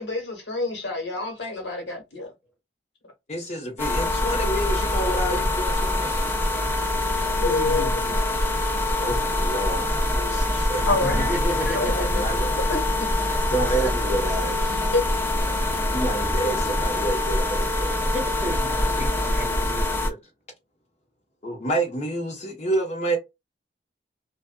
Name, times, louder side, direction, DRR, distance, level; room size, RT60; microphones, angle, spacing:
voice 1, 0.0-2.3 7.2-7.9 9.3-9.4 10.1-11.3 11.7-12.2 12.7-13.1 14.9-15.0, left 2 dB, 75° left, 1.3 m, -28 dB
voice 2, 3.3-6.1 9.0-12.6 13.5-14.5 15.9-18.1 20.0-20.2 21.4-23.2, right 1 dB, 40° left, 0.9 m, -29 dB
sound 1, 3.8-20.1, left 1 dB, 15° left, 0.4 m, -24 dB
voice 3, 7.4-8.2 11.0-12.5 13.3-13.4 13.8-13.9 14.3-14.5 15.5-15.9 18.1-19.9, equal, 5° right, 0.9 m, -33 dB
2.4 x 2.3 x 2.2 m
head